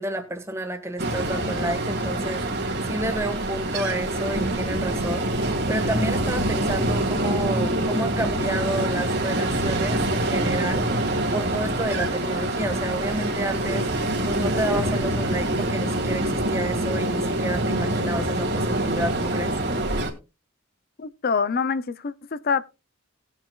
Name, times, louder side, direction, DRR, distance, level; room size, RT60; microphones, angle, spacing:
voice 1, 0.0-2.4 2.8-5.3 5.7-10.9 11.3-19.5, right 1 dB, 15° right, 1.4 m, -30 dB
Ocean, 1.0-20.1, right 1 dB, 55° right, 1.9 m, -25 dB
voice 2, 21.0-22.6, left 5 dB, 45° left, 0.5 m, -25 dB
19.0 x 7.3 x 2.3 m
head